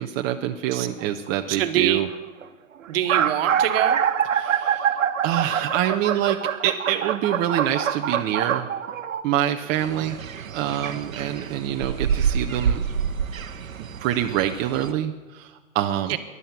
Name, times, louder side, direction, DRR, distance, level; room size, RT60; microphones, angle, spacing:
voice 1, 0.0-2.1 4.3-4.9 5.2-6.4 6.6-8.7 9.2-10.2 10.5-12.8 14.0-16.2, right 11 dB, 25° right, 4 dB, 0.6 m, -26 dB
sound 1, 1.0-1.3 2.1-2.2 2.4-2.5 2.9-9.2, right 8 dB, 70° right, 1.1 m, -24 dB
voice 2, 1.5-2.0 2.9-4.0 16.1-16.2, right 12 dB, 45° right, 9 dB, 1.3 m, -24 dB
sound 2, 9.8-14.9, right 7 dB, 90° right, 0.8 m, -28 dB
14.0 x 11.0 x 7.0 m, 1.3 s
hypercardioid pair, 115°, 40 cm